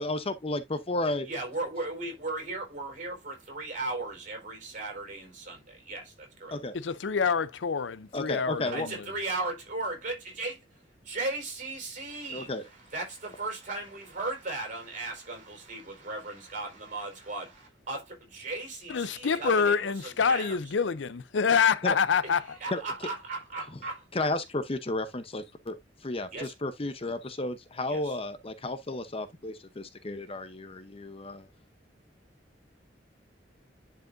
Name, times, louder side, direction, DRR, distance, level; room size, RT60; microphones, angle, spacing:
voice 1, 0.0-1.3 6.5-6.7 8.1-8.9 12.3-12.6 21.8-22.0 22.7-22.8 24.1-25.8 26.0-31.5, left 2 dB, 30° left, 0.8 m, -33 dB
voice 2, 1.2-6.6 8.6-10.6 11.0-20.6 22.2-24.3 26.3-26.5 27.9-28.2, right 2 dB, 45° right, 4.4 m, -37 dB
voice 3, 6.7-8.9 18.9-22.6, left 6 dB, 80° left, 0.6 m, -26 dB
10.5 x 4.8 x 2.6 m
head